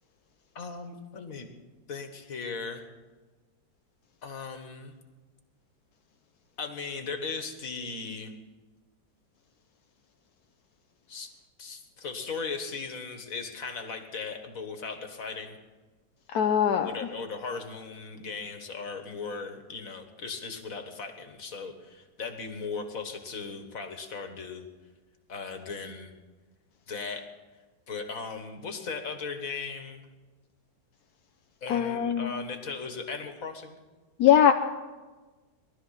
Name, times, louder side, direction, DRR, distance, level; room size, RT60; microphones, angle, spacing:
voice 1, 0.6-1.5 1.9-2.8 4.2-4.9 6.6-8.3 11.1-11.3 11.6-15.6 16.8-24.7 25.3-26.1 26.9-27.2 27.9-30.1 31.6-33.8, left 4 dB, 45° left, 6 dB, 1.8 m, -37 dB
voice 2, 16.3-16.9 31.7-32.3 34.2-34.5, left 9 dB, 65° left, 5 dB, 1.0 m, -21 dB
19.5 x 12.5 x 5.8 m, 1.3 s
omnidirectional pair, 2.1 m